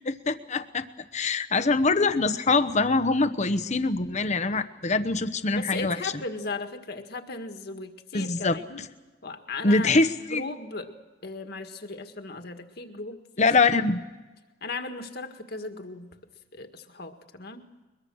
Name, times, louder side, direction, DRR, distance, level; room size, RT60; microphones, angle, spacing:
voice 1, 0.3-0.9 1.1-6.1 8.1-8.6 9.6-10.5 13.4-14.0, left 3 dB, 40° left, 10 dB, 1.1 m, -24 dB
voice 2, 5.5-8.8 9.2-9.9 10.3-10.9 11.2-13.2 14.6-16.1 16.5-17.6, left 3 dB, 60° left, 6 dB, 1.9 m, -36 dB
22.0 x 22.0 x 6.4 m, 1.2 s
head